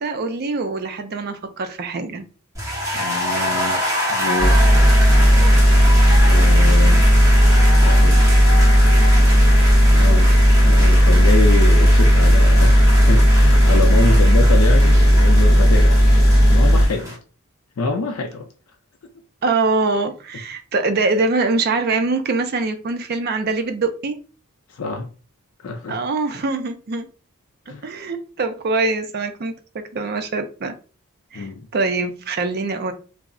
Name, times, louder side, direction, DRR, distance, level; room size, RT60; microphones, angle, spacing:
voice 1, 0.0-2.3 19.4-24.2 25.9-27.1 27.8-30.8 31.3-32.9, right 3 dB, 45° right, 0.4 m, -23 dB
sound 1, 2.5-17.1, equal, 15° right, 1.0 m, -26 dB
voice 2, 2.9-3.8 4.1-4.7 6.2-7.1 7.8-8.4 9.9-16.2 16.5-17.2 17.8-18.5 24.7-25.1 25.6-26.0 27.7-27.8 31.3-31.7, left 3 dB, 70° left, 0.4 m, -26 dB
sound 2, 4.4-16.9, equal, 20° left, 0.9 m, -13 dB
2.3 x 2.0 x 3.6 m
head